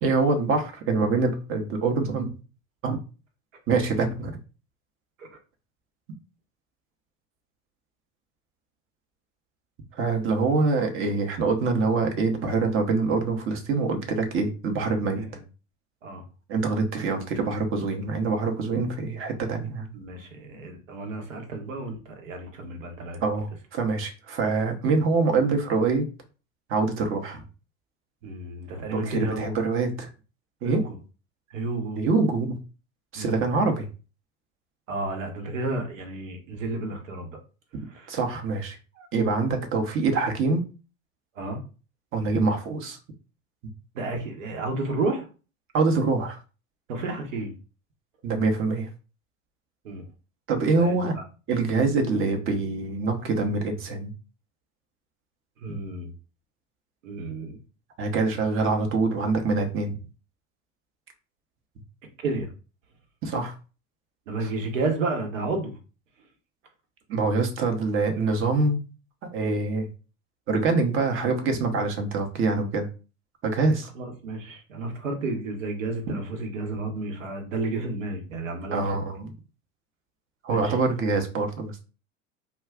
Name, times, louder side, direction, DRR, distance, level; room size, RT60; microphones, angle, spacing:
voice 1, 0.0-2.3 2.8-3.0 3.7-4.3 10.0-15.2 16.5-19.9 23.2-26.1 26.7-27.4 28.9-30.1 30.6-30.8 32.0-32.6 33.1-33.8 38.1-38.8 39.1-40.6 42.1-43.0 45.7-46.4 48.2-48.9 50.5-51.1 51.5-54.1 55.7-55.8 58.0-60.0 63.2-63.5 64.4-64.5 67.1-68.8 69.3-69.9 70.5-72.9 73.4-73.9 78.7-79.3 80.4-81.8, right 3 dB, 30° right, 4 dB, 0.8 m, -25 dB
voice 2, 19.9-23.2 28.2-29.6 30.6-31.0 31.5-32.0 33.1-33.4 34.9-37.4 37.9-38.1 38.9-39.1 41.4-41.6 43.9-45.3 46.9-47.5 49.8-50.0 50.6-51.2 55.6-56.1 57.0-57.6 62.2-62.5 64.3-65.8 73.9-79.0 80.5-80.8, right 2 dB, 70° right, 4 dB, 1.0 m, -31 dB
2.3 x 2.2 x 3.5 m, 0.34 s
hypercardioid pair, 90°, 40 cm